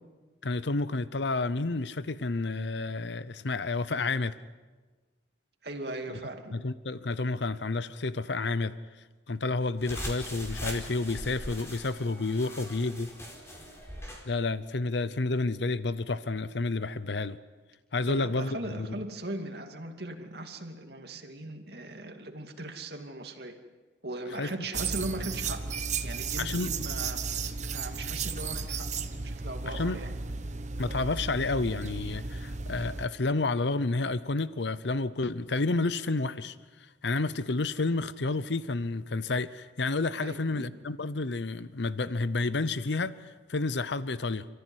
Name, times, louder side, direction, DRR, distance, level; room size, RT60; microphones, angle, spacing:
voice 1, 0.4-4.3 6.5-8.7 9.3-13.1 14.3-17.4 17.9-18.9 24.3-24.5 26.4-26.7 29.6-30.0 30.8-44.5, left 3 dB, 70° left, 15 dB, 0.8 m, -30 dB
voice 2, 5.6-6.6 18.0-23.6 24.0-25.6 26.0-27.2 27.7-28.9 29.2-30.1 40.2-40.7, right 2 dB, 60° right, 4 dB, 2.6 m, -39 dB
sound 1, 9.8-14.2, equal, 15° left, 4.4 m, -40 dB
sound 2, 24.7-33.1, right 4 dB, 40° right, 1.2 m, -34 dB
29.5 x 15.0 x 9.8 m, 1.3 s
head